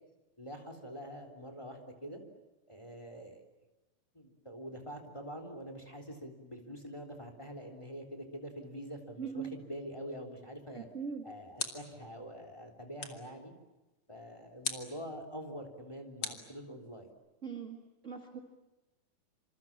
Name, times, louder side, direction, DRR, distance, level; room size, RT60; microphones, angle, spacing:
voice 1, 0.4-2.2 2.7-3.4 4.1-10.9 11.2-13.5 14.1-17.1, equal, 10° left, 6 dB, 3.2 m, -45 dB
voice 2, 9.2-9.5 10.7-11.2 17.4-18.4, right 6 dB, 25° right, 3 dB, 1.9 m, -41 dB
sound 1, 10.9-12.1 13.0-13.4 14.6-15.0 16.2-17.1, left 5 dB, 35° left, 2.8 m, -41 dB
27.5 x 27.0 x 7.4 m, 1.1 s
omnidirectional pair, 3.9 m